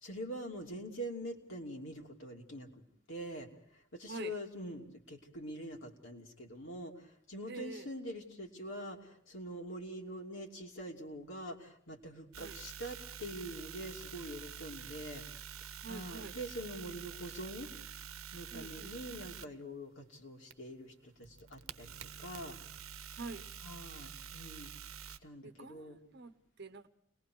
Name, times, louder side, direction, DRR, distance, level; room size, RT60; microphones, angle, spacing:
voice 1, 0.0-2.8 3.1-15.2 15.9-17.7 18.3-21.9 22.2-22.6 23.6-24.7 25.2-26.0, equal, 60° left, 1 dB, 2.9 m, -44 dB
voice 2, 7.5-7.9 12.4-12.6 15.8-16.4 18.5-19.0 23.2-23.5 25.4-26.9, right 3 dB, 50° right, 10 dB, 1.0 m, -46 dB
sound 1, 12.3-19.5 20.5-25.2, right 7 dB, 80° right, 1.0 m, -48 dB
29.5 x 21.0 x 4.7 m, 0.69 s
head